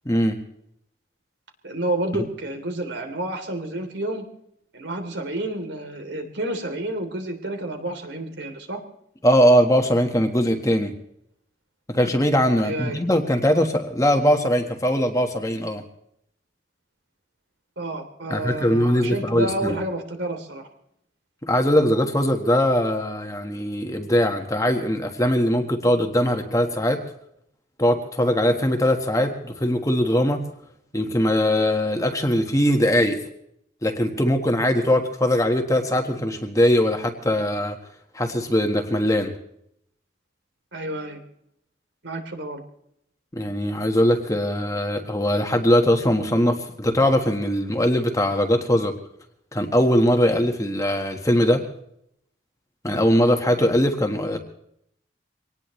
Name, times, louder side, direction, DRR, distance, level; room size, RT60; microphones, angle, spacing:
voice 1, 0.0-0.4 9.2-10.9 11.9-15.8 18.3-19.7 21.5-27.0 27.8-30.4 30.9-33.2 33.8-37.8 38.1-39.3 43.3-48.9 49.5-51.6 52.8-54.4, equal, 15° left, 5 dB, 1.4 m, -21 dB
voice 2, 1.6-4.2 4.7-8.8 12.6-13.0 17.8-20.7 40.7-41.2 42.0-42.6, right 1 dB, 65° right, 5 dB, 3.1 m, -30 dB
24.0 x 18.5 x 3.2 m, 0.74 s
head